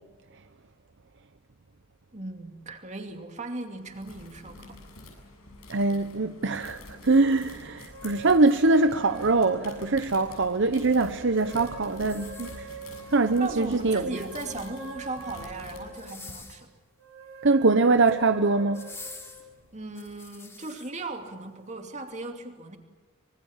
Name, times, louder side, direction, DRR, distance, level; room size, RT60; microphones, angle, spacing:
voice 1, 2.1-4.8 13.4-16.7 19.7-22.8, right 2 dB, 35° right, 2.7 m, -37 dB
sound 1, 3.7-16.3, left 2 dB, 85° left, 7.5 m, -47 dB
voice 2, 5.7-6.8 7.0-12.5 13.1-14.0 17.4-18.9, right 3 dB, 55° right, 0.9 m, -23 dB
sound 2, 7.9-10.7 11.2-16.4 17.0-19.5, right 2 dB, 75° right, 3.3 m, -44 dB
sound 3, 12.1-13.0 14.1-14.9 15.9-16.7 17.8-18.2 18.7-20.9 21.5-21.6, left 3 dB, 15° left, 3.6 m, -46 dB
26.0 x 23.5 x 7.4 m
head